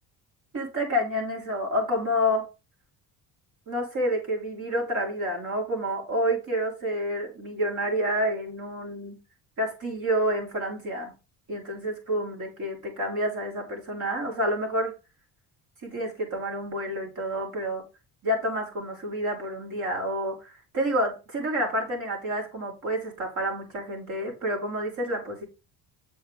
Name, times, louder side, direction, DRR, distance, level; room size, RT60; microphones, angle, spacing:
voice 1, 0.5-2.5 3.7-9.2 9.6-11.1 11.5-14.9 15.8-17.8 18.2-25.4, equal, 50° right, 0 dB, 5.7 m, -29 dB
9.0 x 7.2 x 3.5 m, 0.28 s
cardioid pair, 145°, 39 cm